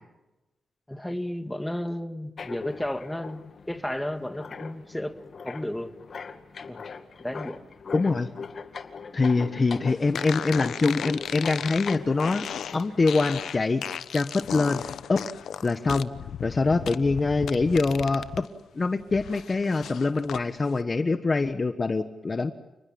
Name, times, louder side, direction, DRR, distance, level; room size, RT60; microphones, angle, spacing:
voice 1, 0.9-5.2 5.4-5.9 6.7-6.8 7.2-7.6, left 1 dB, 5° left, 8 dB, 2.0 m, -33 dB
sound 1, 2.4-13.5, left 5 dB, 55° left, 2.2 m, -41 dB
voice 2, 7.9-8.3 9.1-12.5 12.7-13.8 14.1-14.8 15.1-15.2 15.6-16.1 16.4-18.5 18.7-22.5, left 3 dB, 35° left, 9 dB, 1.4 m, -24 dB
sound 2, 10.1-18.5 18.8-20.4, left 8 dB, 80° left, 0.9 m, -35 dB
30.0 x 20.0 x 8.8 m, 1.0 s
cardioid pair, 90°, 0 cm